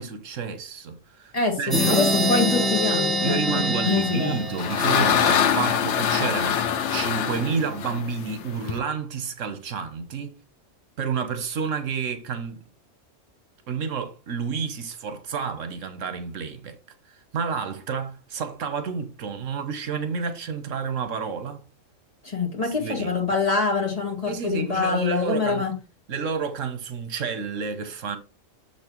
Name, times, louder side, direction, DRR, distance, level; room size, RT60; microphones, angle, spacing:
voice 1, 0.0-2.0 3.2-10.3 11.0-12.6 13.7-16.8 17.1-21.6 22.8-23.1 24.3-25.6 26.1-28.2, right 5 dB, 80° right, 1.3 m, -30 dB
voice 2, 1.3-4.4 22.2-25.7, left 4 dB, 30° left, 1.7 m, -25 dB
sound 1, 1.7-5.3, equal, ahead, 0.4 m, -25 dB
sound 2, 4.1-8.8, left 8 dB, 70° left, 1.0 m, -24 dB
6.5 x 5.9 x 3.0 m
omnidirectional pair, 1.3 m